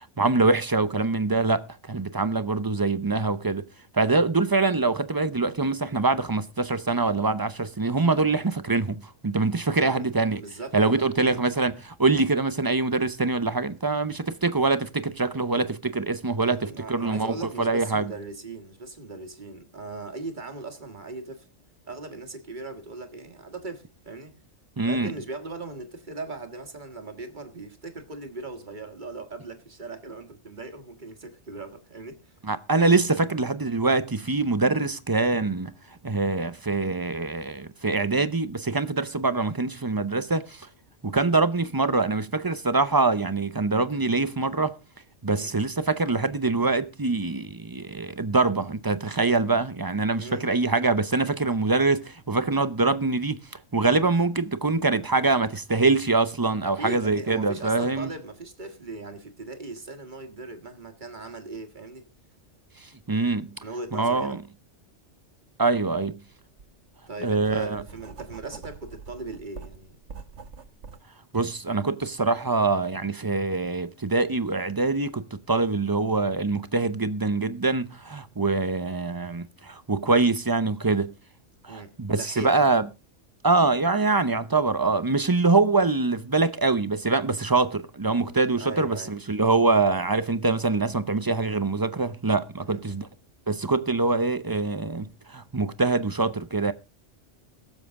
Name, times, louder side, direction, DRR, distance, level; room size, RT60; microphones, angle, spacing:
voice 1, 0.2-3.6 3.9-10.4 10.7-18.0 24.8-25.1 32.4-35.7 36.0-40.7 41.0-44.7 45.2-53.4 53.7-58.1 63.1-63.5 63.9-64.4 65.6-66.2 67.2-67.8 71.3-81.1 81.6-82.8 83.4-93.1 93.5-96.7, right 3 dB, 25° right, 0.6 m, -24 dB
voice 2, 9.8-11.5 16.5-21.5 21.9-24.3 24.8-32.4 45.3-45.5 50.1-50.5 56.6-62.1 63.6-64.4 67.1-70.0 81.7-82.7 88.6-89.1 92.7-93.0, right 3 dB, 40° right, 2.0 m, -39 dB
Writing, 65.9-66.1 66.6-71.0, right 5 dB, 70° right, 1.5 m, -44 dB
22.0 x 7.5 x 3.6 m
omnidirectional pair, 1.2 m